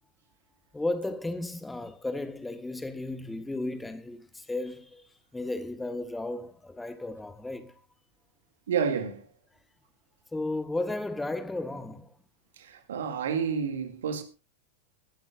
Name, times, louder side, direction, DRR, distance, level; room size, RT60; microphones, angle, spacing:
voice 1, 0.7-7.8 10.3-12.1, left 2 dB, 5° left, 1.4 m, -34 dB
voice 2, 8.7-9.2 12.9-14.2, right 6 dB, 60° right, 2.4 m, -29 dB
21.0 x 11.5 x 2.6 m
figure-of-eight pair, 90°, 0 cm